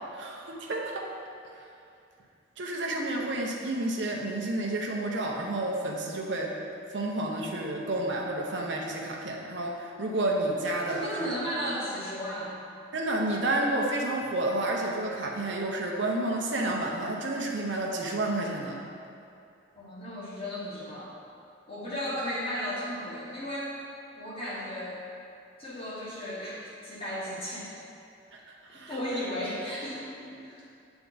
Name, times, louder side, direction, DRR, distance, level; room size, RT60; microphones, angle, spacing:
voice 1, 0.1-1.1 2.6-6.5 6.9-11.3 12.9-18.8 28.3-28.4 28.7-29.0, right 2 dB, 65° right, -2 dB, 0.8 m, -30 dB
voice 2, 10.9-12.6 19.7-21.1 21.7-23.7 24.2-25.0 25.6-27.7 28.7-30.6, equal, 30° left, -8 dB, 1.5 m, -35 dB
8.8 x 3.5 x 4.0 m, 2.6 s
head